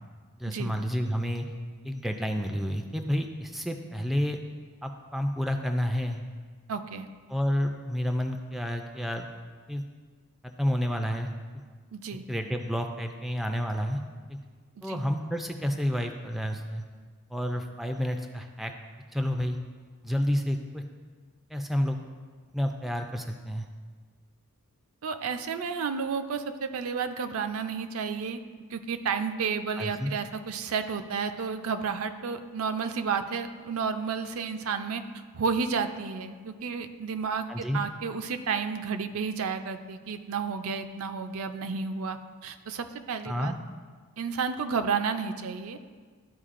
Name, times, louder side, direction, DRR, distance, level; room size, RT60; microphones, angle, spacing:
voice 1, 0.4-1.5 1.8-4.4 4.8-6.2 7.3-9.3 9.7-9.8 10.4-11.3 12.3-14.0 14.3-14.4 14.8-16.8 17.3-18.7 19.1-19.6 20.0-20.8 21.5-22.0 22.5-23.7 29.8-30.1 37.5-37.8 43.3-43.6, equal, ahead, 4 dB, 0.3 m, -30 dB
voice 2, 6.7-7.1 11.9-12.2 14.8-15.0 25.0-28.4 28.7-35.0 35.3-43.5 44.2-45.8, right 5 dB, 65° right, 8 dB, 0.4 m, -31 dB
13.0 x 4.7 x 2.5 m, 1.5 s
head